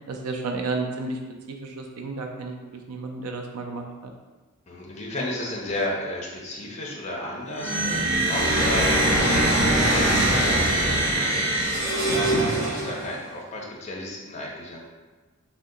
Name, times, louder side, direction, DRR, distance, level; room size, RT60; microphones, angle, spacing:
voice 1, 0.1-1.2 1.5-2.6 2.9-4.1, right 3 dB, 85° right, 2 dB, 0.4 m, -32 dB
voice 2, 4.7-8.9 9.2-11.5 11.9-14.8, left 1 dB, 30° left, -2 dB, 0.5 m, -34 dB
sound 1, 7.5-13.2, right 1 dB, 50° right, 0.8 m, -22 dB
2.7 x 2.1 x 3.7 m, 1.3 s
head